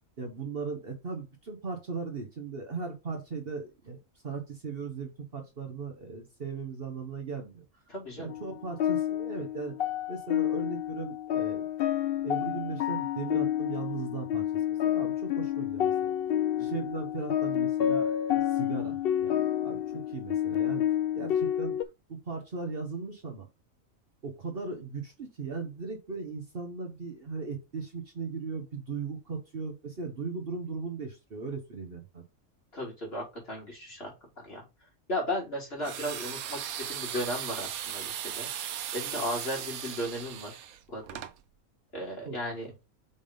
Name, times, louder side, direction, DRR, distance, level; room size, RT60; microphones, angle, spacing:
voice 1, 0.2-4.0 4.2-7.6 8.1-9.8 10.1-11.7 12.2-16.1 16.6-20.8 21.1-21.8 22.1-23.5 24.2-32.2 42.3-42.4, right 4 dB, 45° right, 3 dB, 1.3 m, -38 dB
voice 2, 7.9-8.3 32.7-34.1 34.4-34.6 35.1-38.5 38.9-40.5 40.9-41.2 41.9-42.7, equal, 45° left, -2 dB, 3.2 m, -35 dB
sound 1, 8.3-21.8, left 11 dB, 65° left, 0.6 m, -29 dB
sound 2, 35.8-41.3, right 10 dB, 90° right, 1.2 m, -37 dB
5.6 x 3.6 x 5.0 m, 0.25 s
omnidirectional pair, 1.5 m